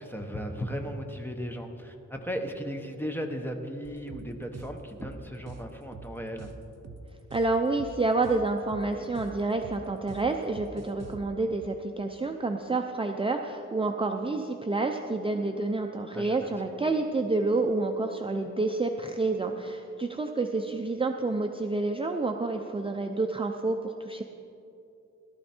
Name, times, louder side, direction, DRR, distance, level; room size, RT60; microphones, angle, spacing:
voice 1, 0.0-6.5 16.1-16.5, equal, 5° left, 4 dB, 1.0 m, -36 dB
sound 1, 3.8-11.2, right 4 dB, 60° right, 0.9 m, -45 dB
voice 2, 7.3-24.2, right 3 dB, 20° right, 4 dB, 0.5 m, -29 dB
17.0 x 12.5 x 4.4 m, 2.8 s
wide cardioid pair, 140°, 30 cm